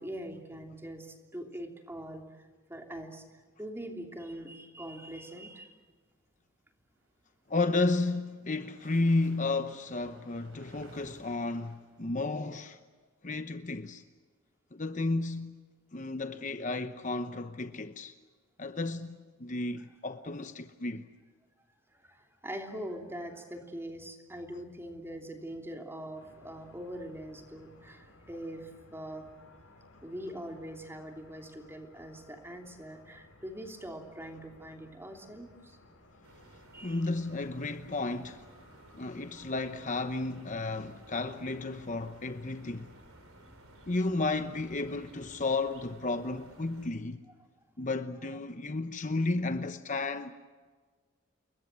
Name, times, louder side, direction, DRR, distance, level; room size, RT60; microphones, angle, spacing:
voice 1, 0.0-3.3 3.6-5.8 21.9-29.3 30.0-35.8 36.7-37.0 43.4-43.5, right 1 dB, 10° right, 3.0 m, -43 dB
sound 1, 7.3-12.4, right 1 dB, 60° right, 6.3 m, -57 dB
voice 2, 7.5-12.8 13.2-14.0 14.7-15.6 15.9-18.1 18.6-21.1 36.8-38.5 38.9-42.9 43.9-47.2 47.8-50.3, left 2 dB, 35° left, 0.9 m, -32 dB
sound 2, 26.1-45.4, left 1 dB, 90° left, 6.7 m, -59 dB
sound 3, 36.2-46.9, right 2 dB, 85° right, 3.8 m, -57 dB
29.0 x 22.0 x 7.6 m
head